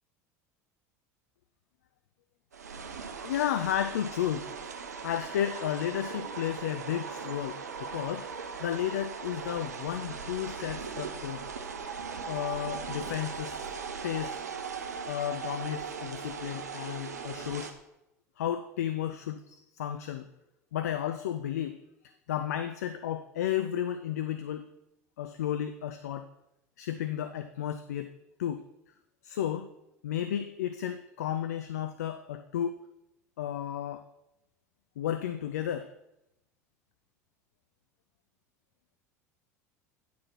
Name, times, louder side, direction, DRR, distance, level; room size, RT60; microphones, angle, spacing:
sound 1, 2.5-17.7, right 5 dB, 85° right, 0.7 m, -39 dB
voice 1, 3.2-4.5 5.0-8.3 8.6-11.4 12.3-13.7 14.0-14.4 15.1-17.7 18.4-20.3 20.7-21.8 22.3-24.7 25.2-26.3 26.8-28.1 28.4-28.6 29.2-29.7 30.0-32.8 33.4-34.0 35.0-35.9, left 10 dB, 75° left, 10 dB, 0.4 m, -33 dB
9.4 x 4.3 x 5.9 m, 0.87 s
hypercardioid pair, 75°, 9 cm